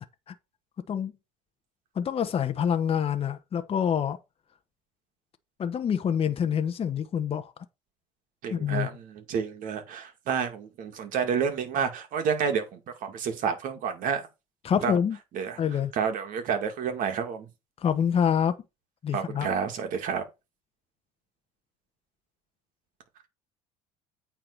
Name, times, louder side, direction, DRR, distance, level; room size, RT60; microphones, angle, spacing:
voice 1, 2.0-4.2 5.6-7.5 8.5-8.9 14.6-15.2 15.6-15.9 17.8-18.5 19.0-19.5, left 8 dB, 35° left, 1.0 m, -26 dB
voice 2, 8.4-14.3 14.8-14.9 15.3-15.6 15.9-17.5 19.1-20.2, right 6 dB, 60° right, 2.3 m, -29 dB
8.7 x 3.7 x 6.6 m
supercardioid pair, 80°, 16 cm